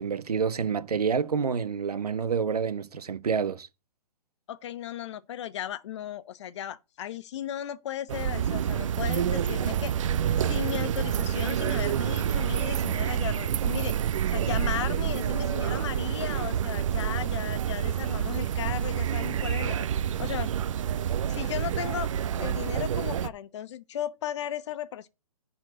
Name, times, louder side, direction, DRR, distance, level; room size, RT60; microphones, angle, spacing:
voice 1, 0.0-3.7, right 6 dB, 80° right, 1.2 m, -28 dB
voice 2, 4.5-9.9 10.4-13.9 14.3-20.5 21.3-25.1, left 11 dB, 50° left, 1.1 m, -36 dB
sound 1, 8.1-23.3, right 9 dB, 55° right, 0.7 m, -28 dB
10.5 x 4.3 x 7.6 m
hypercardioid pair, 140°, 20 cm